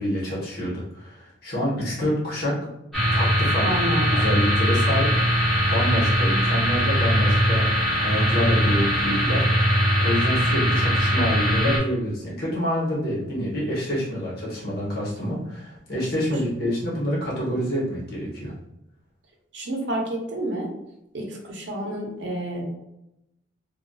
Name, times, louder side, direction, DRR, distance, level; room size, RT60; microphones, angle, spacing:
voice 1, 0.0-2.6 3.1-3.7 4.1-5.1 5.7-9.7 10.0-18.5, equal, 50° left, -7 dB, 1.0 m, -27 dB
sound 1, 2.9-11.8, equal, ahead, 1.0 m, -21 dB
voice 2, 3.6-4.2 19.5-20.7 21.1-22.7, right 1 dB, 70° right, 0 dB, 0.6 m, -29 dB
2.6 x 2.2 x 2.2 m, 0.87 s
head